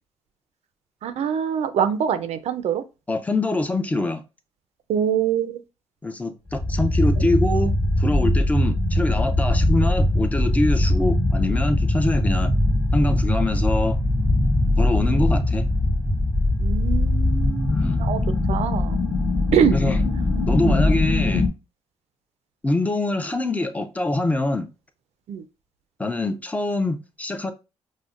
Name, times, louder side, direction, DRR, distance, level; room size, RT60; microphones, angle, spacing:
voice 1, 1.0-2.8 4.9-5.6 16.6-18.2 18.5-19.0 19.5-19.8 20.6-20.8 25.3-25.4, right 8 dB, 70° right, 0.4 m, -24 dB
voice 2, 3.1-4.2 6.0-7.7 8.0-12.5 12.9-14.0 14.8-15.6 17.7-18.1 19.7-20.1 20.5-21.5 22.6-24.7 26.0-27.5, left 2 dB, 10° left, 0.5 m, -24 dB
sound 1, 6.5-21.5, left 1 dB, 35° left, 1.2 m, -21 dB
5.1 x 2.1 x 2.4 m
cardioid pair, 105°, 12 cm